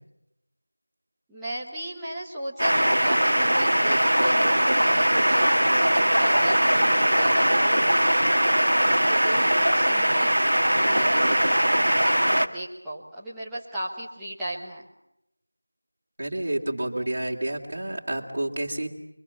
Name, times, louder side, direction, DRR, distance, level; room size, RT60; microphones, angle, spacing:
voice 1, 1.3-8.3 8.8-10.5 10.8-14.9, right 1 dB, ahead, -11 dB, 1.3 m, -36 dB
sound 1, 2.6-12.5, right 1 dB, 65° right, 1.6 m, -21 dB
voice 2, 16.2-18.9, right 1 dB, 30° right, -1 dB, 2.8 m, -29 dB
29.5 x 24.0 x 7.2 m, 0.84 s
figure-of-eight pair, 175°, 0 cm